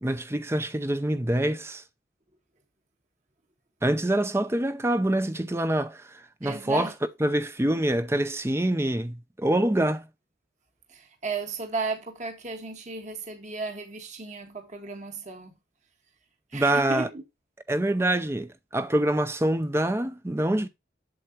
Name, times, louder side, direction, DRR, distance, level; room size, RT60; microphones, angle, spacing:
voice 1, 0.0-1.8 3.8-6.9 7.2-10.1 16.5-17.1 17.7-20.7, right 1 dB, 15° right, 0.6 m, -25 dB
voice 2, 6.4-6.9 10.9-15.5 16.5-17.2, right 4 dB, 40° right, 1.5 m, -34 dB
7.9 x 7.6 x 2.9 m
head